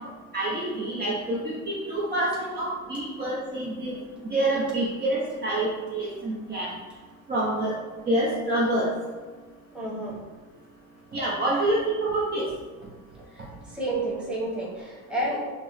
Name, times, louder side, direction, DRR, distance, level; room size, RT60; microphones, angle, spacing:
voice 1, 0.3-4.0 4.2-6.7 7.3-7.7 8.1-8.9 11.1-12.5, right 1 dB, 30° right, -6 dB, 0.7 m, -27 dB
voice 2, 9.7-10.1 13.2-15.5, right 1 dB, 5° right, -6 dB, 1.2 m, -31 dB
5.8 x 2.1 x 3.1 m, 1.3 s
supercardioid pair, 115°, 35 cm